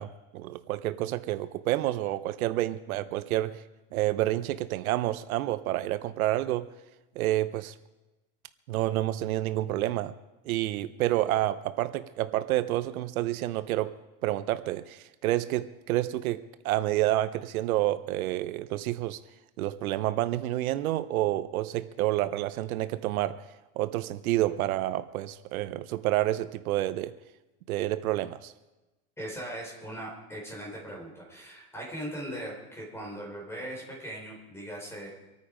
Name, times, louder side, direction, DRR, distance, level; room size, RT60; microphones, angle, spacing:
voice 1, 0.0-3.6 3.9-6.7 7.2-7.7 8.7-10.1 10.4-14.0 14.2-19.2 19.6-23.4 23.8-27.1 27.7-28.5, right 15 dB, 75° right, 0.8 m, -29 dB
voice 2, 29.2-35.1, right 1 dB, 5° left, 4.2 m, -39 dB
25.0 x 9.3 x 5.1 m
supercardioid pair, 165°, 43 cm